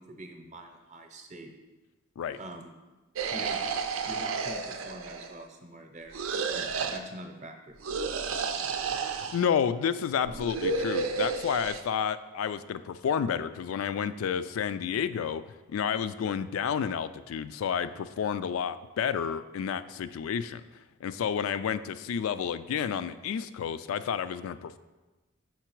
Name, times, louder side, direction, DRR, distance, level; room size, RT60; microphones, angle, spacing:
voice 1, 0.0-1.5 2.4-2.7 3.3-3.6 4.0-6.2 6.5-7.8, right 1 dB, 35° right, 5 dB, 0.7 m, -45 dB
sound 1, 3.2-5.4 6.1-7.0 7.8-9.5 10.3-11.8, right 4 dB, 80° right, 0.5 m, -31 dB
voice 2, 9.1-15.4 15.7-24.8, left 7 dB, 85° left, 13 dB, 0.3 m, -30 dB
5.8 x 4.6 x 4.5 m, 1.2 s
head